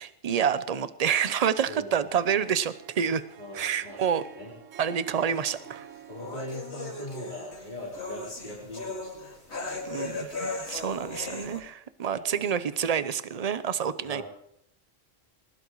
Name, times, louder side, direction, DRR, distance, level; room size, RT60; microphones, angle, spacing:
voice 1, 0.0-3.2 3.5-4.2 4.8-5.9 9.8-14.2, right 8 dB, 40° right, 13 dB, 0.7 m, -28 dB
voice 2, 1.7-2.4 3.4-4.5 6.1-9.8 11.0-11.6 12.0-12.6 14.0-14.2, left 1 dB, 40° left, -6 dB, 4.1 m, -42 dB
Harp, 2.2-7.6, right 10 dB, 90° right, 1.2 m, -48 dB
sound 1, 5.2-11.6, left 3 dB, 60° left, 2.6 m, -38 dB
20.5 x 20.0 x 3.1 m, 0.75 s
omnidirectional pair, 1.3 m